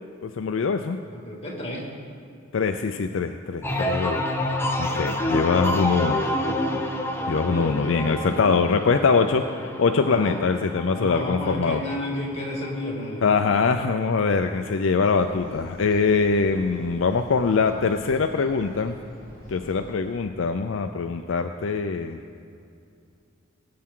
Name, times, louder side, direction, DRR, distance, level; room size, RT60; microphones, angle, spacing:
voice 1, 0.2-1.0 2.5-4.2 4.8-6.2 7.3-11.8 13.2-18.9 19.5-22.2, left 4 dB, 70° left, 7 dB, 0.5 m, -23 dB
voice 2, 1.1-1.9 7.5-8.6 9.8-10.4 10.9-13.3, left 1 dB, 30° left, -2 dB, 2.5 m, -32 dB
sound 1, 3.6-13.2 13.6-14.1, left 1 dB, 10° left, 0.8 m, -29 dB
sound 2, 15.0-20.2, equal, 85° right, 3.3 m, -45 dB
20.0 x 8.5 x 3.8 m, 2.5 s
head